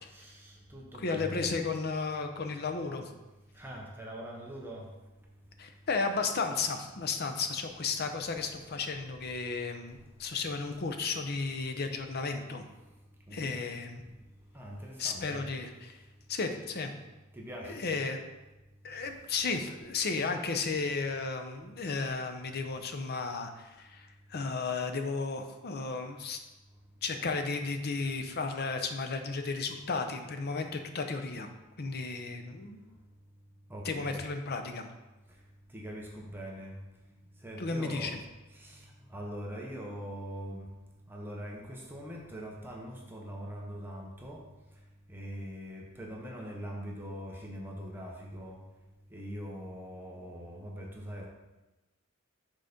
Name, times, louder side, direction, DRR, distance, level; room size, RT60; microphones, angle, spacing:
voice 1, 0.1-1.5 3.6-4.9 13.3-13.5 14.5-15.5 17.3-17.9 33.7-34.2 35.7-36.8 37.4-38.1 38.5-40.7 41.1-44.4 45.1-48.6 49.1-51.3, equal, 10° right, -2 dB, 0.9 m, -42 dB
voice 2, 1.0-3.1 5.6-12.6 13.3-14.0 15.0-16.0 16.3-16.9 17.6-18.2 18.8-26.4 27.0-31.5 31.8-32.8 33.8-34.9 37.6-38.2, left 4 dB, 50° left, 7 dB, 0.6 m, -34 dB
6.3 x 4.1 x 5.1 m, 1.1 s
head